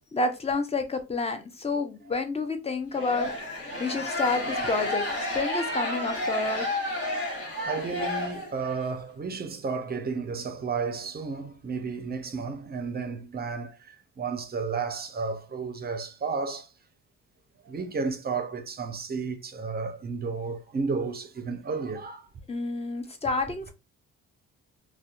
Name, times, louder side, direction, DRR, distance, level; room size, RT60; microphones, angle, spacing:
voice 1, 0.1-3.3 3.8-5.1 5.3-6.7 22.5-23.7, left 3 dB, 20° left, 0.5 m, -29 dB
sound 1, 2.9-8.8, left 1 dB, 50° left, 1.3 m, -31 dB
voice 2, 7.6-16.7 17.6-22.3, right 4 dB, 30° right, 0.5 m, -32 dB
2.6 x 2.2 x 2.3 m
cardioid pair, 90°, 30 cm